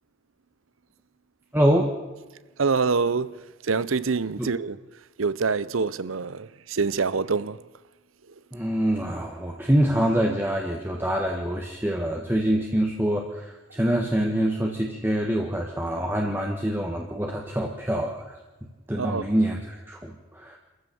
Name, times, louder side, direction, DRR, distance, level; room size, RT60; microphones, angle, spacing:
voice 1, 1.5-1.9 4.4-4.5 8.5-18.3 18.6-20.6, right 1 dB, 10° right, 1.5 m, -25 dB
voice 2, 2.6-4.8 5.2-7.6 19.0-19.2, right 4 dB, 90° right, 0.7 m, -25 dB
26.5 x 15.0 x 7.0 m
head